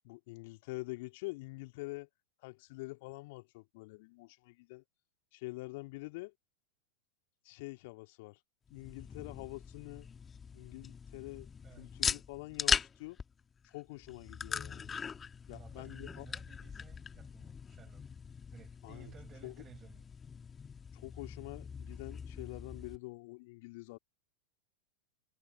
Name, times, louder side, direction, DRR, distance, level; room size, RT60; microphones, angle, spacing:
voice 1, 0.0-2.1 2.4-4.8 5.3-6.3 7.4-8.4 8.7-10.1 10.5-11.5 11.8-13.2 13.6-15.0 15.5-16.3 18.8-19.1 19.4-19.5 20.9-24.0, left 24 dB, 50° left, 2.8 m, -46 dB
sound 1, 8.7-23.0, left 6 dB, 20° left, 2.2 m, -40 dB
voice 2, 15.5-18.0 18.5-20.1, right 8 dB, 25° right, 5.3 m, -56 dB
figure-of-eight pair, 90°, 0 cm